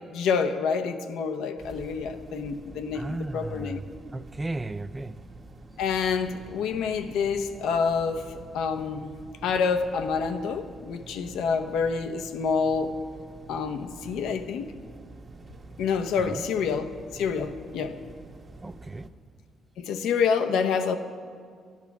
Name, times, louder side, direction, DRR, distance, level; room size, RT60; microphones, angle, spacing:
voice 1, 0.1-3.8 5.8-9.2 9.4-13.0 13.5-14.7 15.8-18.0 19.8-21.0, left 5 dB, 85° left, 8 dB, 0.7 m, -27 dB
sound 1, 1.6-19.1, right 2 dB, 35° right, 1.1 m, -47 dB
voice 2, 2.9-3.8 4.1-5.2 16.2-16.5 18.6-19.1, right 2 dB, 20° right, 15 dB, 0.4 m, -35 dB
13.5 x 10.5 x 5.9 m, 2.1 s
cardioid pair, 90°, 0 cm